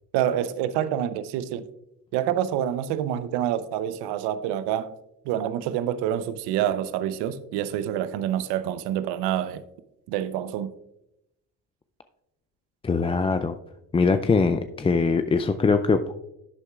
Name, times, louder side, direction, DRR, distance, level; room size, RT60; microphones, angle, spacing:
voice 1, 0.1-1.6 2.1-4.9 5.3-9.6 10.1-10.7, right 10 dB, 75° right, 0.8 m, -27 dB
voice 2, 12.8-13.6 13.9-16.1, left 4 dB, 15° left, 0.4 m, -22 dB
11.5 x 8.1 x 2.4 m
supercardioid pair, 80°, 41 cm